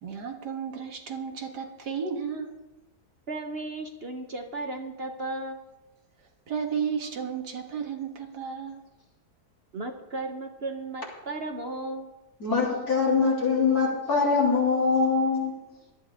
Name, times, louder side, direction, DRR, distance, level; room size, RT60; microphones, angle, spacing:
voice 1, 0.0-2.5 6.5-8.8, right 6 dB, 85° right, 3 dB, 2.2 m, -33 dB
voice 2, 3.3-5.7 9.7-12.1, right 2 dB, 45° right, 4 dB, 1.1 m, -35 dB
voice 3, 12.4-15.5, left 4 dB, 65° left, -3 dB, 4.0 m, -23 dB
18.0 x 12.5 x 3.6 m, 0.99 s
omnidirectional pair, 1.7 m